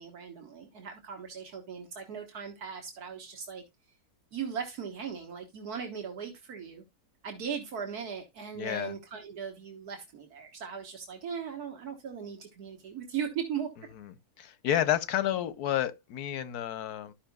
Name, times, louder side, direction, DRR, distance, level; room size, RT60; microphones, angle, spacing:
voice 1, 0.0-3.6 4.3-6.8 7.2-13.7, right 7 dB, 80° right, 1.7 m, -38 dB
voice 2, 8.6-8.9 14.0-17.1, left 11 dB, 90° left, 1.3 m, -30 dB
13.0 x 5.7 x 2.3 m
omnidirectional pair, 1.6 m